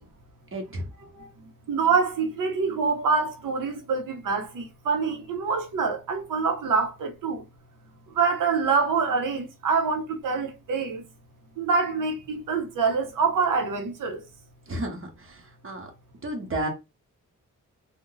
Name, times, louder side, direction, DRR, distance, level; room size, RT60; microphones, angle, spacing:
voice 1, 0.5-0.8 14.7-15.4 15.6-15.9 16.2-16.7, right 1 dB, 40° right, 0.8 m, -31 dB
voice 2, 1.7-7.4 8.2-11.0 11.6-14.2, right 5 dB, 90° right, 0.7 m, -25 dB
2.5 x 2.1 x 3.8 m
wide cardioid pair, 95°, 31 cm